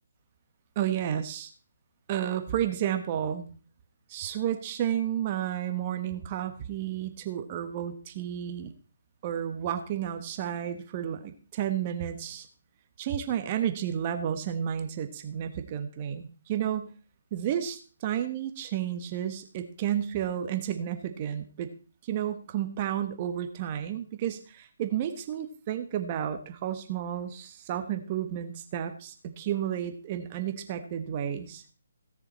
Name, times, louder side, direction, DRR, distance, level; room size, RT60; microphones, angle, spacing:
voice 1, 0.7-1.5 2.1-3.5 4.1-8.7 9.2-12.5 13.0-16.9 17.3-21.7 22.0-31.6, right 10 dB, 30° right, 8 dB, 1.3 m, -31 dB
16.5 x 6.7 x 4.4 m, 0.38 s
figure-of-eight pair, 140°, 0 cm